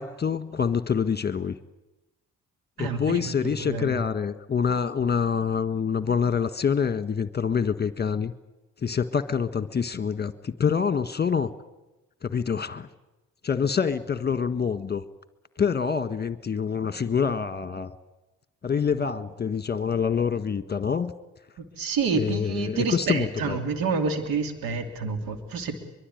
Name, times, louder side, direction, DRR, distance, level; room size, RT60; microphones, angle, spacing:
voice 1, 0.0-1.6 2.8-8.3 8.8-11.5 12.2-12.9 13.4-15.0 15.6-17.9 18.6-21.1 22.1-23.6, left 6 dB, 25° left, 12 dB, 1.6 m, -26 dB
voice 2, 2.8-3.3 3.6-3.9 21.6-25.7, right 4 dB, 70° right, 7 dB, 2.9 m, -28 dB
23.5 x 23.0 x 9.4 m, 1.0 s
hypercardioid pair, 50°, 36 cm